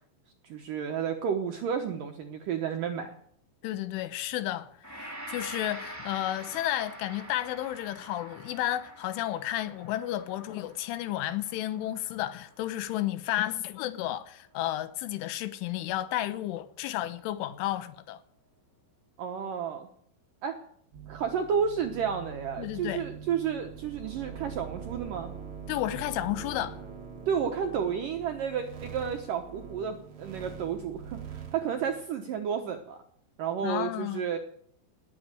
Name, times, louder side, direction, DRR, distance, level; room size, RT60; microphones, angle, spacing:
voice 1, 0.4-3.2 19.2-19.9 20.4-20.6 21.1-25.3 27.3-33.0 33.4-34.4, right 7 dB, 80° right, 1.9 m, -31 dB
voice 2, 3.6-18.2 22.6-23.0 25.7-26.8 33.6-34.2, left 14 dB, 85° left, 3.5 m, -32 dB
Gong, 4.8-14.0, right 1 dB, 5° right, 2.0 m, -46 dB
sound 1, 20.9-32.0, right 7 dB, 60° right, 1.4 m, -43 dB
18.5 x 8.7 x 9.0 m
omnidirectional pair, 5.5 m